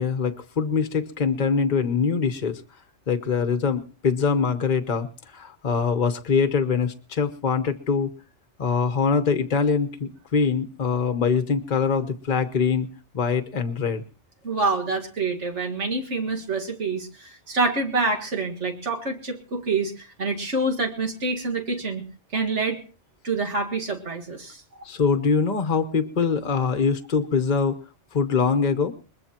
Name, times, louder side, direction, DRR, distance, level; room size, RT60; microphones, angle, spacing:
voice 1, 0.0-2.6 3.1-5.1 5.3-8.1 8.6-12.9 13.1-14.0 24.8-27.8 28.1-28.9, left 5 dB, 45° left, 9 dB, 1.0 m, -23 dB
voice 2, 14.4-22.0 22.3-22.8 23.2-24.6, right 3 dB, 80° right, 3 dB, 2.2 m, -26 dB
21.5 x 21.0 x 2.9 m, 0.37 s
omnidirectional pair, 1.2 m